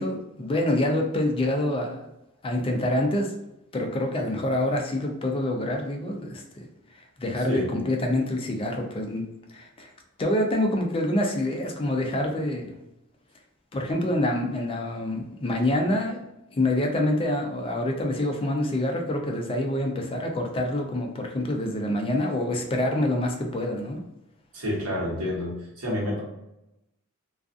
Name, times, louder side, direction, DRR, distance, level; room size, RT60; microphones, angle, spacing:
voice 1, 0.0-2.1 2.4-3.3 3.7-6.7 7.2-9.2 9.5-9.9 10.2-12.7 13.7-16.2 16.5-24.0, left 1 dB, 25° left, 2 dB, 0.4 m, -26 dB
voice 2, 24.5-26.2, left 1 dB, 80° right, -4 dB, 1.0 m, -29 dB
2.4 x 2.4 x 2.4 m, 0.90 s
head